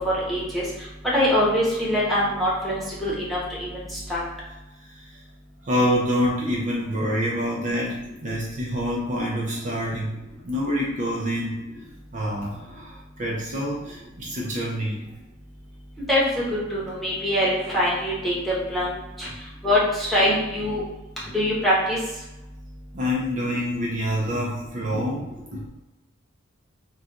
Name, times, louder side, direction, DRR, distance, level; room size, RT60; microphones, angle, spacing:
voice 1, 0.3-0.6 1.0-2.7 3.0-3.8 4.1-4.2 16.1-16.2 16.7-19.3 19.6-20.8 21.3-22.0, left 1 dB, ahead, -8 dB, 0.9 m, -23 dB
voice 2, 4.8-5.2 5.6-10.1 10.4-11.6 12.1-15.1 22.9-25.7, equal, 40° right, -4 dB, 0.5 m, -27 dB
2.4 x 2.3 x 3.9 m, 1.0 s
head